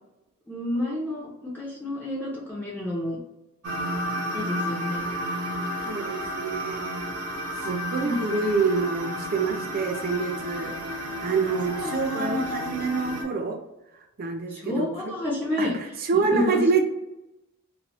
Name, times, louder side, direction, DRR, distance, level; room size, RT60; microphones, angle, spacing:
voice 1, 0.5-3.2 4.3-5.0 8.0-8.2 11.8-12.4 14.5-16.6, left 1 dB, 10° left, -6 dB, 0.5 m, -30 dB
sound 1, 3.6-13.2, equal, 85° right, 0.8 m, -32 dB
voice 2, 5.8-7.1 7.6-10.7 11.2-13.6 14.2-15.1 15.6-15.7 16.1-16.8, right 4 dB, 45° right, 3 dB, 0.5 m, -26 dB
3.1 x 2.2 x 2.9 m, 0.93 s
head